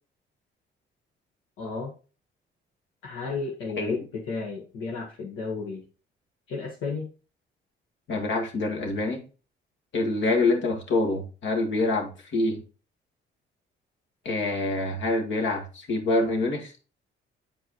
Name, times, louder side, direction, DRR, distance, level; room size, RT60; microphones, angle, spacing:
voice 1, 1.6-1.9 3.0-5.8 6.5-7.1, left 4 dB, 85° left, -2 dB, 1.5 m, -33 dB
voice 2, 8.1-9.2 9.9-12.6 14.3-16.7, left 2 dB, 70° left, 2 dB, 1.9 m, -26 dB
9.1 x 4.7 x 3.1 m, 0.35 s
cardioid pair, 90°, 20 cm